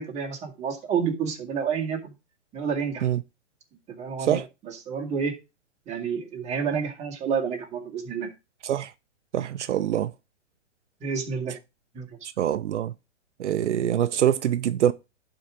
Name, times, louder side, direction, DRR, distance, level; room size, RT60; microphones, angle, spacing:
voice 1, 0.0-2.1 2.5-3.1 3.9-5.4 5.9-8.3 11.0-11.6 11.9-12.2, right 6 dB, 20° right, 2.1 m, -29 dB
voice 2, 9.3-10.1 12.4-12.9 13.4-14.9, right 10 dB, 80° right, 0.6 m, -24 dB
11.5 x 3.9 x 5.0 m
hypercardioid pair, 140°, 35 cm